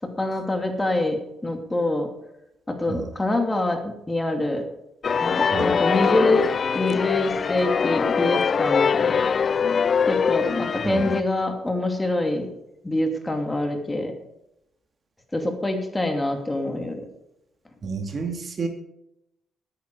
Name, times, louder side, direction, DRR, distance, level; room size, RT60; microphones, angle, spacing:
voice 1, 0.0-2.1 2.7-4.6 5.2-6.4 6.7-9.2 10.1-12.5 12.8-14.1 15.3-17.1, left 2 dB, 15° left, 4 dB, 2.5 m, -25 dB
sound 1, 5.0-11.2, left 6 dB, 45° left, 0.3 m, -22 dB
voice 2, 17.8-18.7, right 4 dB, 45° right, 5 dB, 2.4 m, -29 dB
13.5 x 9.7 x 4.7 m, 0.84 s
cardioid pair, 90°, 0 cm